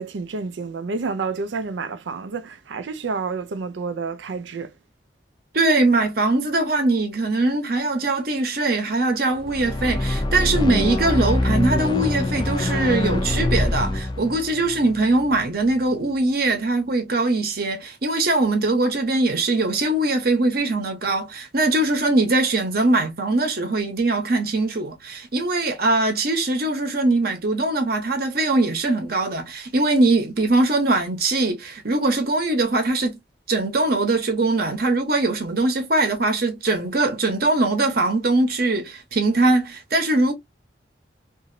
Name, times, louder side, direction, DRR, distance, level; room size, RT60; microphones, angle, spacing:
voice 1, 0.0-4.7, right 4 dB, 85° right, 0.5 m, -29 dB
voice 2, 5.5-33.2 33.5-40.3, right 2 dB, 55° right, 0.9 m, -21 dB
sound 1, 9.4-15.7, left 2 dB, 25° left, 0.4 m, -24 dB
2.8 x 2.7 x 2.6 m
head